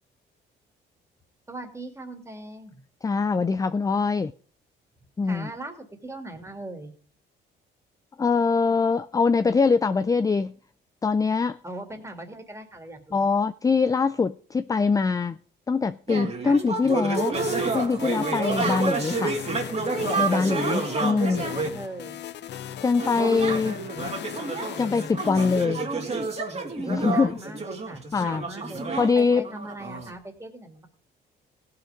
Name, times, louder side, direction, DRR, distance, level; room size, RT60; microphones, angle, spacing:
voice 1, 1.5-2.8 5.3-6.9 11.6-13.4 16.4-16.6 18.7-18.9 20.4-22.2 26.8-28.8 29.1-30.9, right 2 dB, 15° right, 2.6 m, -39 dB
voice 2, 3.0-4.3 5.2-5.5 8.2-10.5 11.0-11.6 13.1-15.4 15.7-17.4 17.7-19.4 20.2-21.4 22.8-23.8 24.8-25.8 26.8-27.3 28.1-28.5 29.0-29.5, left 4 dB, 15° left, 0.4 m, -23 dB
sound 1, 16.1-21.8 23.0-30.1, right 3 dB, 35° right, 2.4 m, -29 dB
sound 2, 17.1-25.7, left 11 dB, 60° left, 0.6 m, -38 dB
16.0 x 5.8 x 5.1 m
cardioid pair, 90°, 20 cm